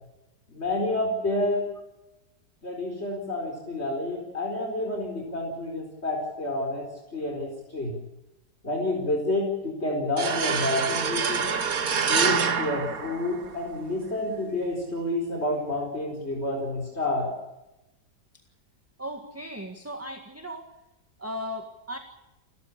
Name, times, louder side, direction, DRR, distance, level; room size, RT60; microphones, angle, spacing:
voice 1, 0.5-1.6 2.6-6.8 7.1-7.9 8.6-11.5 12.1-17.3, left 2 dB, 35° left, 1 dB, 4.8 m, -29 dB
sound 1, 10.2-13.7, right 6 dB, 55° right, 1.8 m, -26 dB
voice 2, 19.0-20.7 21.2-22.0, equal, 10° right, 5 dB, 1.7 m, -36 dB
29.5 x 14.0 x 8.5 m, 0.94 s
omnidirectional pair, 1.9 m